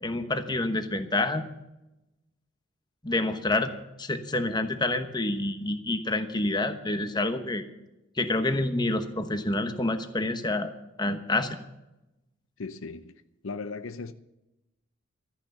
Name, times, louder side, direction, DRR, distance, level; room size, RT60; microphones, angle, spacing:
voice 1, 0.0-1.4 3.0-3.7 4.0-7.6 8.2-10.7 11.0-11.6, left 2 dB, 20° left, 1.1 m, -28 dB
voice 2, 12.6-14.1, left 4 dB, 70° left, 0.6 m, -38 dB
13.5 x 10.0 x 6.7 m
head